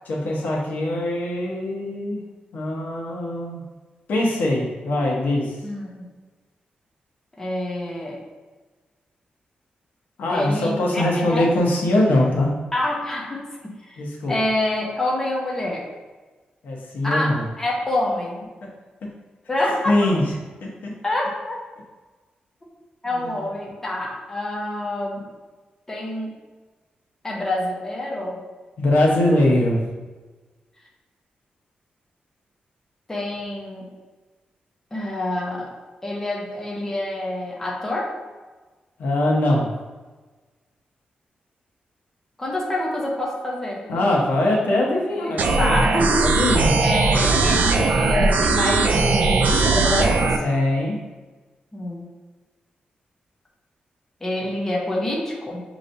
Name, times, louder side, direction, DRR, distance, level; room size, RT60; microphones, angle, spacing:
voice 1, 0.0-2.2 2.5-3.6 4.1-5.5 10.2-12.5 14.0-14.4 16.6-17.4 18.6-18.7 19.9-20.3 20.6-20.9 23.2-23.3 28.8-29.8 39.0-39.7 43.9-45.7 46.2-46.7 50.4-51.0, left 1 dB, 85° left, -2 dB, 0.9 m, -22 dB
voice 2, 5.6-6.0 7.4-8.2 10.3-11.4 12.7-14.0 14.3-15.9 17.0-18.4 19.5-20.1 21.0-21.6 23.0-25.3 25.9-26.3 27.2-28.4 33.1-33.9 34.9-35.7 36.0-38.1 42.4-44.1 45.2-46.3 46.8-50.4 51.7-52.0 54.2-55.6, left 1 dB, 15° left, -4 dB, 0.8 m, -27 dB
sound 1, 45.4-50.4, right 3 dB, 60° right, 0.4 m, -19 dB
6.5 x 3.0 x 2.7 m, 1.3 s
wide cardioid pair, 165°, 3 cm